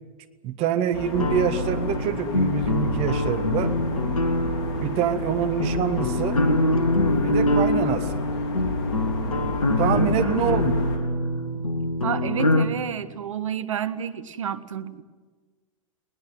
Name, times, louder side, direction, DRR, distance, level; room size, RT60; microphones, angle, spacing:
voice 1, 0.4-3.7 4.8-6.4 7.2-8.2 9.8-10.8, right 9 dB, 35° right, 10 dB, 1.7 m, -26 dB
sound 1, 0.9-11.0, left 3 dB, 50° left, 4.3 m, -33 dB
sound 2, 1.1-12.7, left 1 dB, 75° left, 1.7 m, -24 dB
voice 2, 10.2-10.6 12.0-15.0, right 8 dB, 65° right, 14 dB, 1.3 m, -30 dB
21.0 x 19.0 x 9.5 m, 1.4 s
figure-of-eight pair, 95°, 18 cm